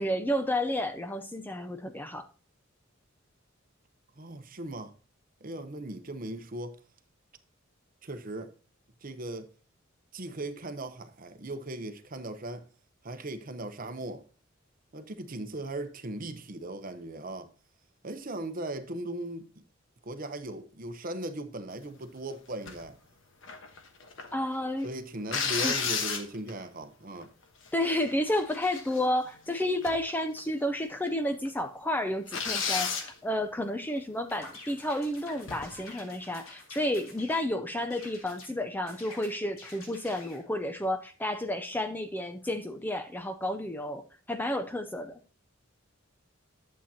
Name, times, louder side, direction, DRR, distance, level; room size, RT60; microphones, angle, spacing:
voice 1, 0.0-2.3 24.3-24.9 25.6-25.8 27.7-45.2, left 1 dB, 10° left, 0.5 m, -31 dB
voice 2, 4.2-4.9 5.4-6.8 8.0-8.5 9.0-9.5 10.1-12.7 13.0-14.2 14.9-17.5 18.0-19.5 20.0-23.0 24.8-27.3, right 1 dB, 40° right, 0.8 m, -38 dB
sound 1, 22.7-22.9 23.4-24.3 25.3-26.6 27.2-27.3 27.7-28.0 28.4-29.3 29.8-30.1 30.4-30.5 31.1-31.2 31.4-31.5 32.3-33.1 35.4-35.8, left 5 dB, 65° left, 1.2 m, -32 dB
sound 2, 34.3-37.5 37.9-38.5 38.9-40.4, left 3 dB, 85° left, 3.3 m, -49 dB
11.0 x 7.4 x 2.8 m
head